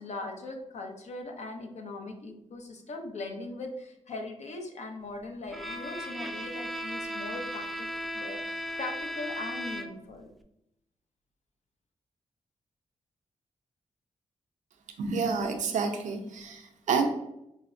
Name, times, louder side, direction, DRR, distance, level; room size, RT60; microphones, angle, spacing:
voice 1, 0.0-7.9 8.1-10.3, left 2 dB, 65° left, 3 dB, 0.7 m, -40 dB
Bowed string instrument, 5.5-10.2, equal, ahead, 0.3 m, -36 dB
voice 2, 15.0-17.1, right 5 dB, 85° right, 4 dB, 0.5 m, -29 dB
4.9 x 2.1 x 2.5 m, 0.82 s
cardioid pair, 70°, 12 cm